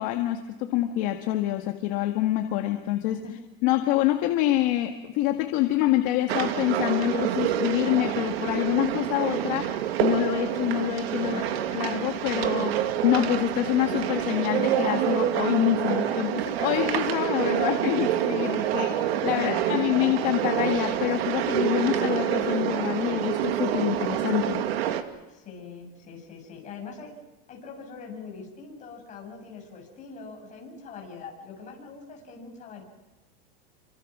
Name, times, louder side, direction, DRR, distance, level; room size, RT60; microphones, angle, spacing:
voice 1, 0.0-3.2 3.6-11.4 11.7-24.7, left 14 dB, 45° left, 5 dB, 1.8 m, -26 dB
sound 1, 6.3-25.0, right 11 dB, 80° right, 2.6 m, -27 dB
voice 2, 11.2-11.6 15.9-16.2 18.5-18.7 19.3-19.8 25.3-27.2 27.5-32.8, left 5 dB, 25° left, 1 dB, 7.4 m, -42 dB
29.0 x 25.5 x 6.2 m, 1.1 s
supercardioid pair, 165°, 30 cm